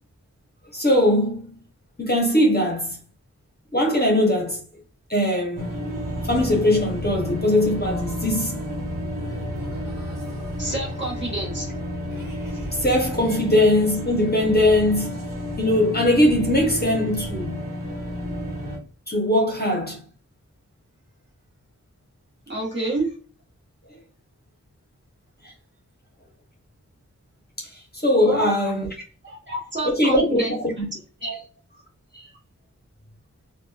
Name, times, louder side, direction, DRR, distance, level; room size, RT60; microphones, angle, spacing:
voice 1, 0.7-1.6 2.0-3.0 3.7-4.6 5.1-5.7 6.2-8.7 12.8-15.2 15.6-17.6 19.1-20.0 27.6-27.7 28.0-28.9 29.8-30.9 31.2-31.4 32.1-32.3, left 1 dB, 30° left, 0.8 m, -21 dB
sound 1, 5.6-18.8, equal, 75° right, 1.1 m, -31 dB
voice 2, 10.6-11.7 22.5-23.1 28.2-28.5 29.2-30.5 31.2-31.3, right 2 dB, 35° right, 1.2 m, -28 dB
2.9 x 2.2 x 2.3 m
wide cardioid pair, 40°, 32 cm